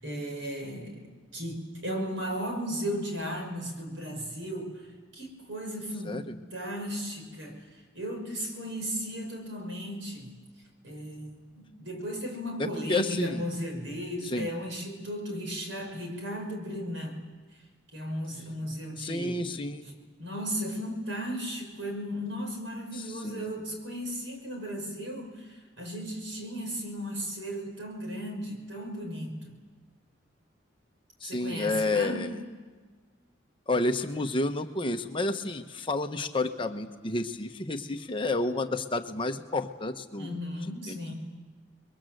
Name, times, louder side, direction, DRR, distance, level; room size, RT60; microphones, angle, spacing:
voice 1, 0.0-1.0 1.3-10.4 10.8-17.2 17.9-19.5 20.2-29.5 31.2-32.4 40.2-41.1, equal, 70° right, 3 dB, 5.9 m, -36 dB
voice 2, 6.0-6.4 12.6-13.5 14.2-14.5 19.0-19.9 23.2-23.5 31.2-32.4 33.7-41.1, left 2 dB, 25° left, 6 dB, 1.0 m, -30 dB
28.5 x 22.0 x 7.8 m, 1.4 s
head